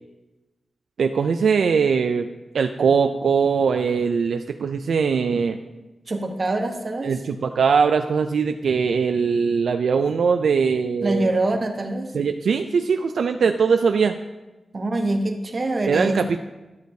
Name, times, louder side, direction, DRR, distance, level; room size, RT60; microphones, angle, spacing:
voice 1, 1.0-2.3 2.5-5.6 7.0-11.3 12.1-14.2 15.9-16.4, right 5 dB, 85° right, 7 dB, 0.3 m, -21 dB
voice 2, 6.1-7.1 11.0-12.1 14.7-16.2, right 2 dB, 50° right, 4 dB, 1.0 m, -24 dB
11.5 x 6.4 x 2.7 m, 1.1 s
cardioid pair, 65°, 0 cm